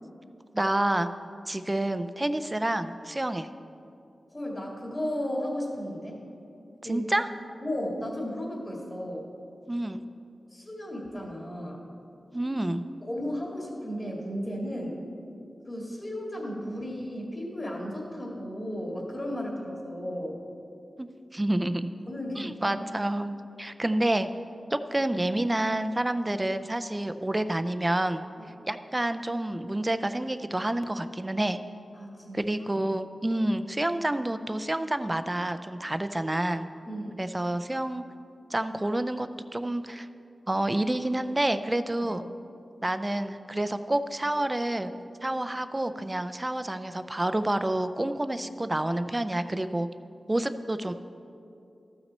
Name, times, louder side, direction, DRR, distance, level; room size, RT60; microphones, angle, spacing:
voice 1, 0.5-1.1 1.5-3.5 6.9-7.3 9.7-10.0 12.3-12.8 21.0-21.1 21.3-21.9 22.4-24.3 24.7-28.2 28.6-31.6 32.3-36.6 37.2-38.0 38.5-40.1 40.5-42.2 42.8-44.9 45.2-49.9 50.3-50.9, right 1 dB, 20° right, 10 dB, 0.4 m, -28 dB
voice 2, 4.3-6.2 6.8-7.2 7.6-9.2 10.5-11.8 13.1-15.0 15.7-20.4 22.1-22.8 32.0-32.5 36.9-37.3 42.0-42.1, equal, 30° left, -2 dB, 2.1 m, -34 dB
13.5 x 6.0 x 4.2 m, 2.6 s
wide cardioid pair, 80°, 0 cm